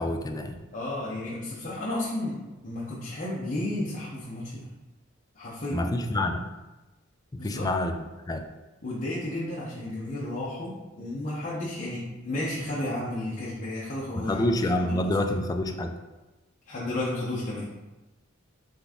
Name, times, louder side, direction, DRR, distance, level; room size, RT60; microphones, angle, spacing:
voice 1, 0.0-0.6 5.7-6.5 7.3-8.4 14.2-16.0, left 1 dB, 20° left, 5 dB, 0.3 m, -27 dB
voice 2, 0.7-4.7 5.3-5.9 7.4-7.7 8.8-14.5 14.8-15.2 16.7-17.7, left 1 dB, 40° left, -8 dB, 0.8 m, -33 dB
3.9 x 3.4 x 3.6 m, 1.1 s
head